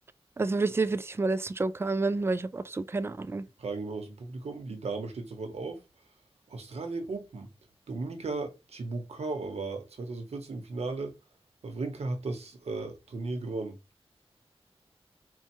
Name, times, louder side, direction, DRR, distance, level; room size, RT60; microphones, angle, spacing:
voice 1, 0.4-3.4, right 3 dB, 25° right, 0.3 m, -29 dB
voice 2, 3.6-5.8 6.5-7.5 7.9-11.1 11.6-13.8, right 3 dB, 75° right, 1.1 m, -36 dB
4.3 x 2.3 x 4.5 m
wide cardioid pair, 110°, 11 cm